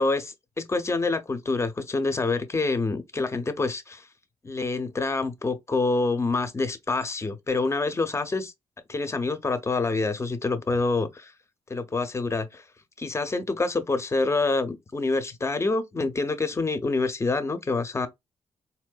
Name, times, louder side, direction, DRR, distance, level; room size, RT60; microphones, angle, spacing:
voice 1, 0.0-4.0 4.4-8.5 8.9-11.3 11.7-12.6 13.0-18.1, left 3 dB, 30° left, 0.8 m, -27 dB
4.2 x 2.6 x 2.4 m
cardioid pair, 70°, 10 cm